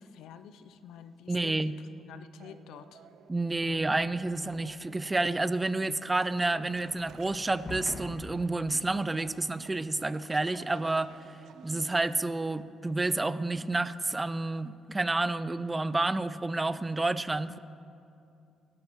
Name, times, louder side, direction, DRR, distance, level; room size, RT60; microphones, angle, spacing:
voice 1, 0.0-1.6 1.9-3.0 17.5-17.6, left 8 dB, 85° left, 11 dB, 0.5 m, -49 dB
voice 2, 1.3-1.8 3.3-11.4 11.6-17.6, right 2 dB, 20° right, 15 dB, 0.4 m, -30 dB
sound 1, 2.4-13.2, right 8 dB, 75° right, 0.5 m, -55 dB
sound 2, 3.6-4.8 5.1-9.6, left 2 dB, 25° left, 2.0 m, -46 dB
17.5 x 11.5 x 3.1 m, 2.6 s
cardioid pair, 90°, 0 cm